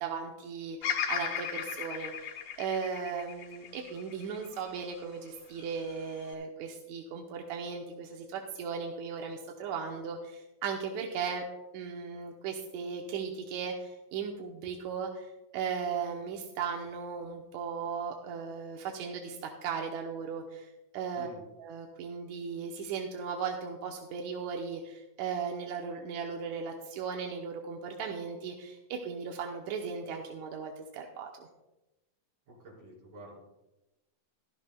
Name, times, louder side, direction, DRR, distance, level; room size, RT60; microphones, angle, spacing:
voice 1, 0.0-11.4 11.7-21.3 21.6-31.5, right 6 dB, 70° right, 1 dB, 1.9 m, -37 dB
Bird vocalization bird call bird song, 0.8-5.0 5.6-6.3, left 8 dB, 75° left, 1.4 m, -36 dB
voice 2, 32.5-33.4, right 1 dB, 45° right, -6 dB, 5.6 m, -49 dB
16.0 x 12.0 x 2.2 m, 0.99 s
omnidirectional pair, 3.9 m